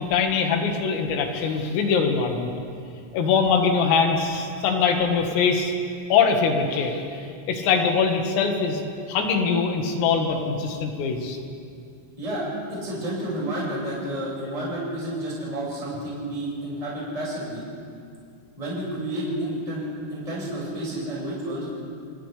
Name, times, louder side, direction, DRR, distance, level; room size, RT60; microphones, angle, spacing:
voice 1, 0.0-2.5 3.1-5.7 6.1-8.8 9.1-11.4, left 5 dB, 85° left, 3 dB, 4.4 m, -22 dB
voice 2, 12.2-17.6 18.6-21.7, right 1 dB, 5° right, -6 dB, 5.4 m, -30 dB
29.5 x 27.0 x 3.4 m, 2.4 s
omnidirectional pair, 5.9 m